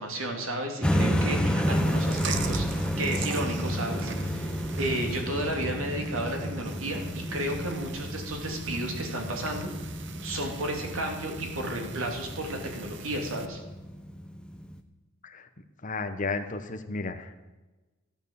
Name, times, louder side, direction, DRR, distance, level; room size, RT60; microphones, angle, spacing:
voice 1, 0.0-2.7 3.0-9.7 10.2-13.6, right 1 dB, 85° right, 2 dB, 2.7 m, -33 dB
sound 1, 0.8-14.8, equal, 5° left, 0.8 m, -31 dB
Chewing mastication, 1.6-13.5, right 5 dB, 60° right, 0.9 m, -41 dB
voice 2, 15.8-17.3, left 3 dB, 40° left, 7 dB, 1.0 m, -33 dB
14.5 x 9.1 x 7.1 m, 1.2 s
head